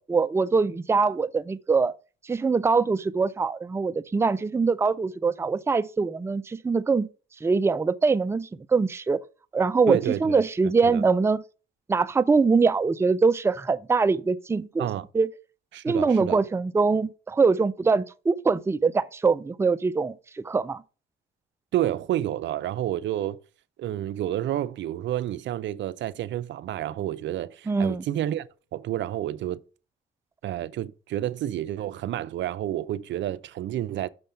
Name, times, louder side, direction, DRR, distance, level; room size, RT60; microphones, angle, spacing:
voice 1, 0.0-1.9 2.2-7.1 7.4-9.2 9.5-11.4 11.9-14.9 15.1-15.3 15.8-20.8 27.7-28.0, right 4 dB, 15° right, 0.4 m, -23 dB
voice 2, 9.9-10.4 10.8-11.0 14.8-15.1 15.7-16.4 21.7-23.4 23.8-28.5 28.7-29.6 30.4-34.1, right 12 dB, 70° right, 0.5 m, -29 dB
6.3 x 5.2 x 5.7 m
cardioid pair, 90°, 20 cm